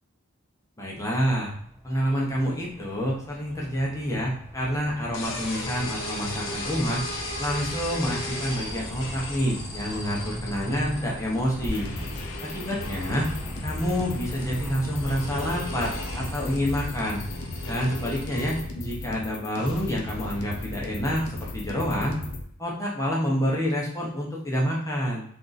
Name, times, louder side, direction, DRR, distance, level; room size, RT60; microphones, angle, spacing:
voice 1, 0.8-1.5 1.8-7.0 7.4-11.9 12.5-13.3 13.6-17.2 17.7-22.2 22.6-25.2, equal, 15° left, -3 dB, 0.8 m, -28 dB
sound 1, 0.9-16.9, equal, 10° right, 0.5 m, -39 dB
sound 2, 5.1-18.6, left 1 dB, 60° left, 0.9 m, -37 dB
sound 3, 11.6-22.4, left 2 dB, 90° left, 0.7 m, -36 dB
3.7 x 2.6 x 3.9 m, 0.62 s
head